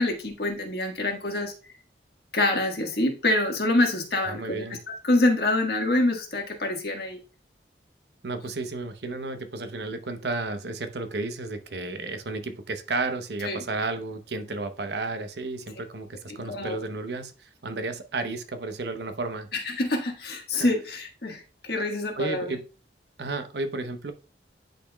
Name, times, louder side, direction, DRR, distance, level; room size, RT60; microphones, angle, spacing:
voice 1, 0.0-1.5 2.3-7.2 13.4-13.6 16.5-16.8 19.5-22.4, left 2 dB, 65° left, 2 dB, 1.5 m, -26 dB
voice 2, 4.2-4.8 8.2-19.5 20.5-20.7 22.2-22.6 23.2-24.1, right 3 dB, 70° right, 8 dB, 0.8 m, -32 dB
10.0 x 4.2 x 2.2 m, 0.33 s
head